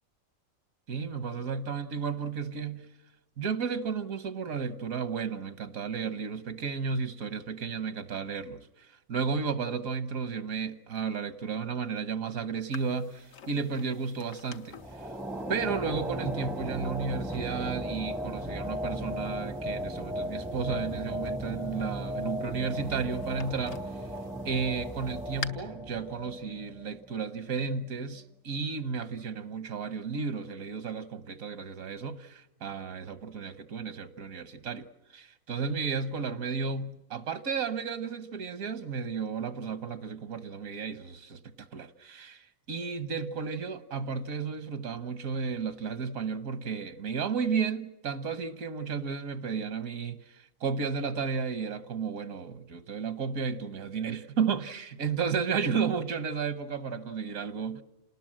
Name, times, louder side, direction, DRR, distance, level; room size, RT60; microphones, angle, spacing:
voice 1, 0.9-2.9 3.4-14.8 15.5-23.9 24.4-34.9 35.1-50.4 50.6-57.8, right 5 dB, 85° right, 1.5 m, -33 dB
sound 1, 12.7-25.5, left 6 dB, 75° left, 1.5 m, -49 dB
sound 2, 14.8-27.3, equal, ahead, 0.5 m, -36 dB
28.0 x 19.5 x 7.5 m
omnidirectional pair, 1.4 m